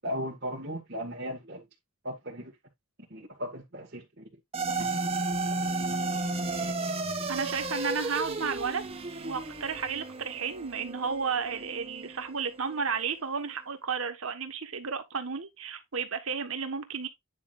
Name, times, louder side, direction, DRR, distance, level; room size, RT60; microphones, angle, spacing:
voice 1, 0.0-1.7 2.0-2.5 3.1-4.2, equal, 50° right, 1.9 m, -36 dB
sound 1, 4.5-13.0, right 2 dB, 30° right, 1.3 m, -33 dB
voice 2, 7.3-8.8 9.2-17.1, right 5 dB, 75° right, 1.4 m, -32 dB
9.6 x 6.1 x 2.5 m
head